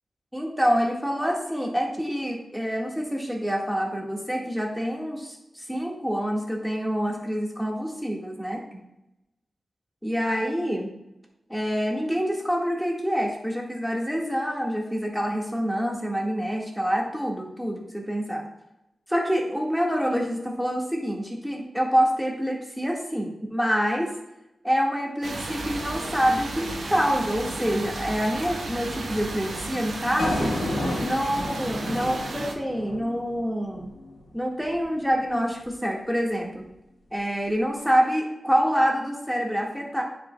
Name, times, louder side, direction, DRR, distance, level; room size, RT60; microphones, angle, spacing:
voice 1, 0.3-8.8 10.0-10.9 11.5-18.4 19.1-24.1 24.6-30.5 31.0-33.9 34.3-36.6 37.1-40.0, equal, ahead, -1 dB, 1.6 m, -26 dB
sound 1, 25.2-32.5, right 2 dB, 85° right, 0.9 m, -34 dB
sound 2, 30.2-34.3, left 1 dB, 90° left, 1.2 m, -31 dB
9.6 x 4.9 x 2.2 m, 0.90 s
wide cardioid pair, 70°, 0 cm